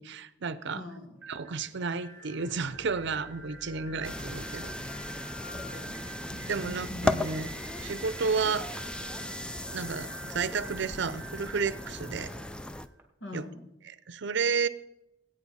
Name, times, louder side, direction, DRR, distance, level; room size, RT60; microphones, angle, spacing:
voice 1, 0.0-0.8 1.3-4.7 6.5-7.5 7.8-8.7 9.7-12.3 13.3-13.4 13.9-14.7, right 5 dB, 65° right, 15 dB, 0.6 m, -32 dB
voice 2, 0.7-1.2 5.5-7.2 13.2-13.7, left 2 dB, 70° left, 4 dB, 1.9 m, -43 dB
sound 1, 1.2-13.0, right 2 dB, 10° right, 1.8 m, -47 dB
sound 2, 1.6-12.6, equal, 40° left, 1.5 m, -52 dB
sound 3, 4.0-12.9, left 2 dB, 5° left, 0.4 m, -36 dB
18.0 x 8.7 x 4.2 m, 0.87 s
head